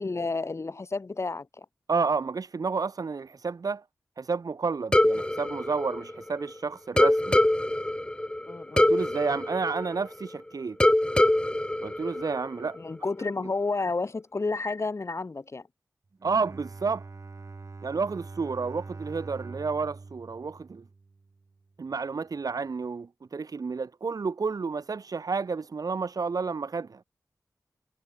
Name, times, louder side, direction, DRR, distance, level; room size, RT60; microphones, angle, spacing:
voice 1, 0.0-1.6 8.4-8.9 12.8-15.6, left 3 dB, 45° left, 3.2 m, -31 dB
voice 2, 1.9-3.8 4.2-7.4 8.7-10.8 11.8-12.8 16.2-17.0 17.8-20.8 21.8-27.0, right 4 dB, 65° right, 4.8 m, -30 dB
sound 1, 4.9-6.5 7.0-10.4 10.8-12.8, left 1 dB, 15° left, 2.7 m, -24 dB
Bowed string instrument, 16.1-21.4, right 3 dB, 50° right, 5.7 m, -44 dB
wide cardioid pair, 85°, 7 cm